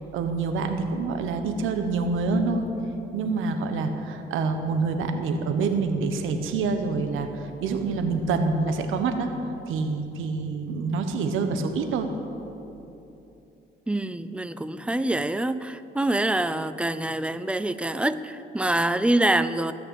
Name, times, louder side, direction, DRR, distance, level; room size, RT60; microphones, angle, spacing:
voice 1, 0.1-2.7 3.1-7.3 7.6-9.3 9.7-12.1, right 4 dB, 90° right, 7 dB, 1.2 m, -26 dB
voice 2, 13.9-19.7, right 1 dB, 5° right, 13 dB, 0.5 m, -25 dB
18.5 x 6.6 x 8.4 m, 2.9 s
cardioid pair, 90°, 20 cm